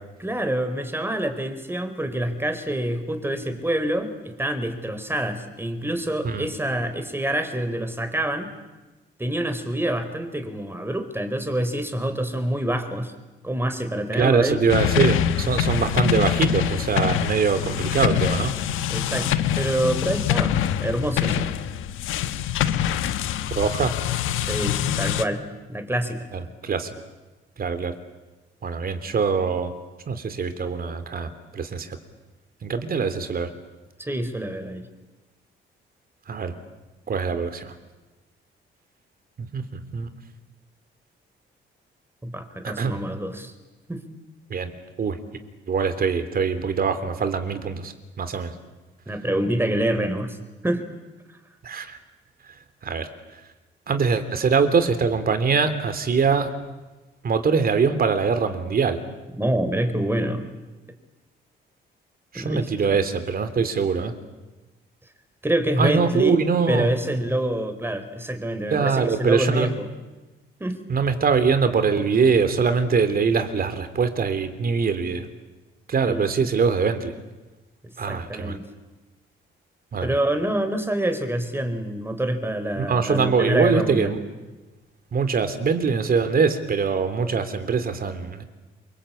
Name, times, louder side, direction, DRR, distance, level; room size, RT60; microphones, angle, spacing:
voice 1, 0.2-8.5 9.2-13.1 13.4-14.6 18.9-19.3 19.6-21.5 24.4-25.4 25.7-26.3 34.0-34.9 42.2-43.5 43.9-44.0 49.1-50.4 50.6-50.9 59.4-60.5 62.3-62.7 65.4-66.4 66.7-69.9 70.6-70.8 76.0-76.4 78.1-78.7 80.0-84.1, right 1 dB, 10° right, 9 dB, 4.0 m, -26 dB
voice 2, 14.1-18.5 23.5-23.9 26.3-26.9 27.6-27.9 28.6-29.7 30.1-32.0 32.6-33.5 36.3-36.5 37.1-37.7 39.4-40.1 42.6-43.0 44.5-44.7 45.0-45.2 45.7-48.5 51.6-52.0 52.8-53.1 53.9-56.5 57.2-59.0 62.3-64.1 65.8-66.9 68.7-69.7 70.9-75.3 75.9-77.1 78.0-78.6 79.9-80.2 82.7-84.2 85.1-88.4, right 5 dB, 50° right, 10 dB, 3.2 m, -23 dB
sound 1, 14.7-25.2, left 10 dB, 90° left, 1.3 m, -24 dB
28.0 x 24.0 x 8.6 m, 1.2 s
cardioid pair, 90°, 20 cm